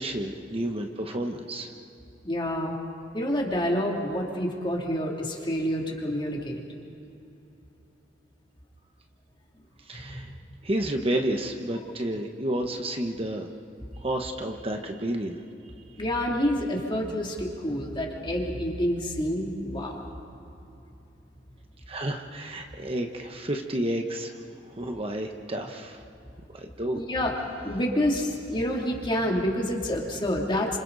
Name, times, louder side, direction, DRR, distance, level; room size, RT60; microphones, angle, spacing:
voice 1, 0.0-1.7 9.8-10.3 10.6-13.5 14.0-15.4 21.9-24.4 24.7-26.0 26.5-27.0, right 1 dB, 30° right, 3 dB, 1.2 m, -31 dB
voice 2, 2.2-2.7 3.1-6.6 16.0-20.0 26.9-27.4 27.6-30.8, equal, 25° left, -1 dB, 2.9 m, -28 dB
30.0 x 27.0 x 4.1 m, 2.9 s
head